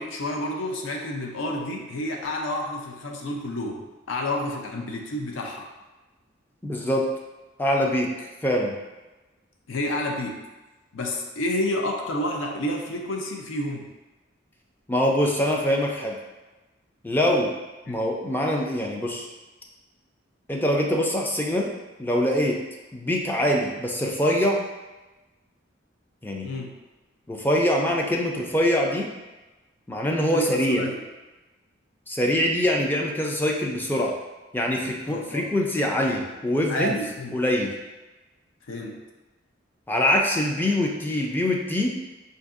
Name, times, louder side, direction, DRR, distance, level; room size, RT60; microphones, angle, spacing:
voice 1, 0.0-5.7 9.7-10.4 10.9-13.9 17.9-18.0 26.4-26.7 30.3-31.0 35.1-35.5 36.7-37.4 38.7-39.0, left 1 dB, 75° left, 1 dB, 0.5 m, -30 dB
voice 2, 6.6-7.1 7.6-8.7 14.9-16.2 17.0-17.5 17.9-19.3 20.5-21.7 22.0-22.6 22.9-24.7 26.2-26.5 27.3-29.1 29.9-30.8 32.1-34.1 34.5-37.0 37.3-37.7 39.9-42.0, left 1 dB, 10° left, -1 dB, 0.4 m, -24 dB
4.5 x 2.6 x 2.4 m, 1.1 s
head